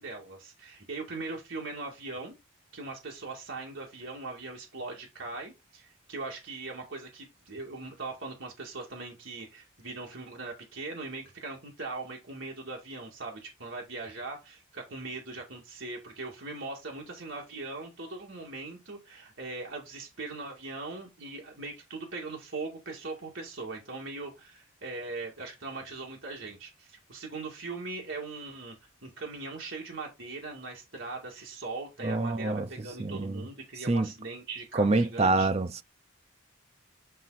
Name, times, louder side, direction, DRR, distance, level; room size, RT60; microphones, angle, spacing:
voice 1, 0.0-2.3 2.7-28.7 29.0-35.5, right 3 dB, 60° right, 2.3 m, -40 dB
voice 2, 32.0-33.5 33.9-34.1 34.7-35.8, right 2 dB, 30° right, 0.5 m, -27 dB
9.1 x 3.6 x 4.2 m
head